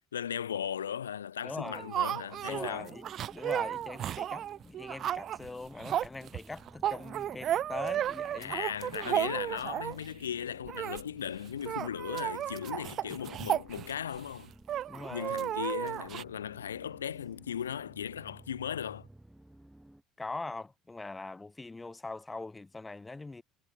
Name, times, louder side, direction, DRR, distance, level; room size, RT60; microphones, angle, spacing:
voice 1, 0.1-2.9 8.4-14.5 15.1-19.1, left 9 dB, 90° left, 2.6 m, -37 dB
voice 2, 1.4-1.9 2.5-8.6 14.9-15.4 20.2-23.4, left 3 dB, 15° left, 4.2 m, -42 dB
sound 1, 1.6-10.1 10.6-11.0 11.3-11.4 11.6-14.2 14.7-16.2, right 11 dB, 50° right, 0.4 m, -34 dB
sound 2, 2.3-20.0, right 1 dB, 5° right, 4.0 m, -56 dB
hypercardioid pair, 65°, 0 cm